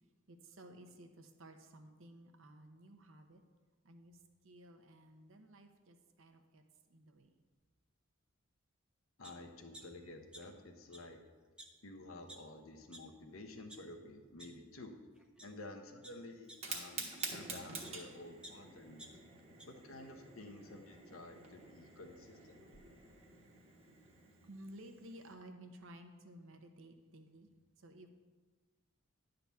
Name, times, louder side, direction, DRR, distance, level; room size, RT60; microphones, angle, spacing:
voice 1, 0.0-3.4 3.8-7.4 22.5-27.5 27.8-28.1, right 1 dB, 70° right, 5 dB, 0.9 m, -56 dB
voice 2, 9.2-11.2 11.8-14.9 15.4-19.0 19.6-22.8, left 2 dB, 85° left, 4 dB, 1.0 m, -51 dB
sound 1, 9.2-9.3 9.7-10.6 10.9-11.0 11.6-11.7 12.3-12.4 12.9-13.0 13.5-13.8 14.4-14.5 15.2-15.5 16.0-18.0 18.4-19.7 20.1-20.2, right 1 dB, 5° right, 0.5 m, -54 dB
Fire, 16.5-25.3, right 4 dB, 30° right, 1.2 m, -49 dB
10.5 x 4.0 x 6.9 m, 1.4 s
head